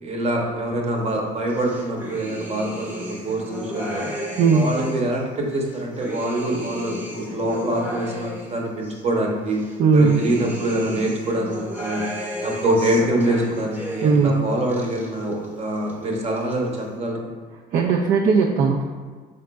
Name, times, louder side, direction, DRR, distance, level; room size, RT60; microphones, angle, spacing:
voice 1, 0.0-4.1 4.5-9.6 9.9-12.1 12.4-17.3, right 1 dB, 40° right, 0 dB, 0.9 m, -25 dB
sound 1, 1.5-5.1 5.6-9.0 9.5-14.3 14.6-15.5 15.8-16.5, equal, 10° right, 0.8 m, -34 dB
voice 2, 4.4-4.7 9.8-10.3 14.0-14.5 17.7-18.8, right 5 dB, 55° right, 0 dB, 0.4 m, -18 dB
5.1 x 3.7 x 2.2 m, 1.4 s
cardioid pair, 110°, 17 cm